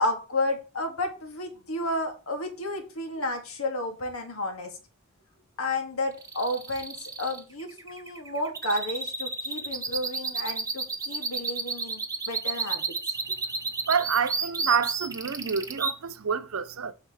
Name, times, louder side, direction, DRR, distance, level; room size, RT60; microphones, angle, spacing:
voice 1, 0.0-4.8 5.6-12.9, left 1 dB, 90° left, 2.0 m, -31 dB
sound 1, 6.2-15.9, right 4 dB, 15° right, 0.8 m, -32 dB
voice 2, 13.9-16.9, right 6 dB, 85° right, 0.7 m, -27 dB
7.9 x 4.7 x 5.0 m
head